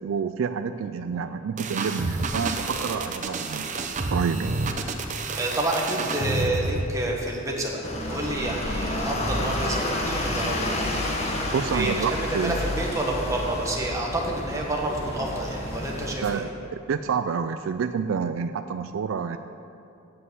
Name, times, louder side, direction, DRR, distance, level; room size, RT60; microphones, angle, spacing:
voice 1, 0.0-3.7 4.1-4.6 11.5-12.6 16.2-19.4, right 6 dB, 75° right, 9 dB, 0.3 m, -28 dB
sound 1, 1.6-6.9, right 3 dB, 35° right, 0.7 m, -29 dB
voice 2, 5.3-10.8 11.6-16.4, right 1 dB, 15° right, -2 dB, 1.4 m, -29 dB
sound 2, 7.8-16.1, left 1 dB, 35° left, 1.3 m, -30 dB
7.7 x 7.6 x 8.1 m, 2.6 s
head